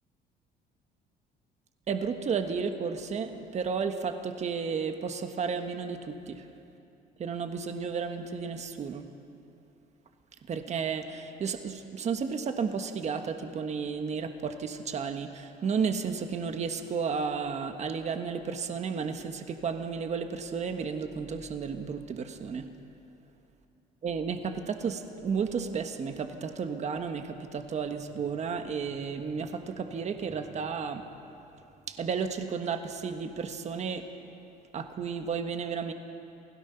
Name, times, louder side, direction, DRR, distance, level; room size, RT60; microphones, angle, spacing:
voice 1, 1.9-6.5 7.2-9.1 10.5-22.7 24.0-31.1 31.9-34.1 34.7-35.9, right 6 dB, 40° right, 7 dB, 1.4 m, -33 dB
28.5 x 17.0 x 5.8 m, 2.7 s
cardioid pair, 110°, 17 cm